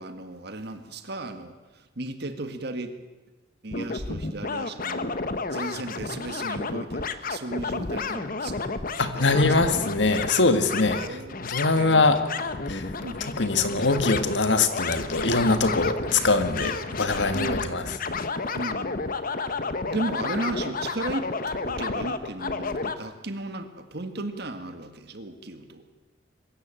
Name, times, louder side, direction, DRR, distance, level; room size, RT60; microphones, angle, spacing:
voice 1, 0.0-2.9 3.6-5.2 5.5-8.7 9.1-9.5 10.9-12.2 13.0-13.3 17.3-18.0 18.5-19.2 19.9-21.3 21.6-25.9, right 2 dB, 60° right, 8 dB, 1.7 m, -35 dB
sound 1, 3.7-23.0, left 4 dB, 50° left, 1.0 m, -31 dB
voice 2, 9.0-11.0 11.4-12.2 12.7-12.8 13.4-17.8, left 3 dB, 65° left, 9 dB, 1.7 m, -22 dB
23.0 x 13.5 x 8.9 m, 1.2 s
head